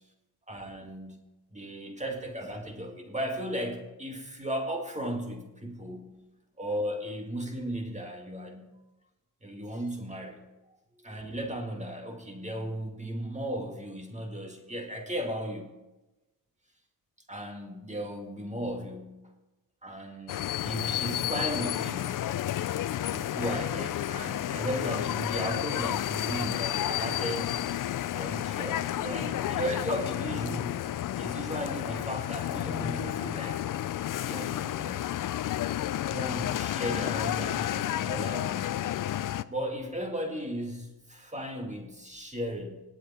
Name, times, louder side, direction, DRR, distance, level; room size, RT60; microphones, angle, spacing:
voice 1, 0.5-1.2 1.5-6.1 6.6-8.6 9.4-10.4 11.0-15.7 17.3-19.3 19.8-22.2 23.0-27.7 28.1-30.8 31.2-33.6 34.3-35.1 36.1-38.8 39.5-42.8, equal, 20° right, 3 dB, 2.1 m, -36 dB
sound 1, 20.3-39.4, left 12 dB, 55° left, 0.5 m, -31 dB
18.5 x 8.4 x 4.3 m, 1.0 s
cardioid pair, 85°, 38 cm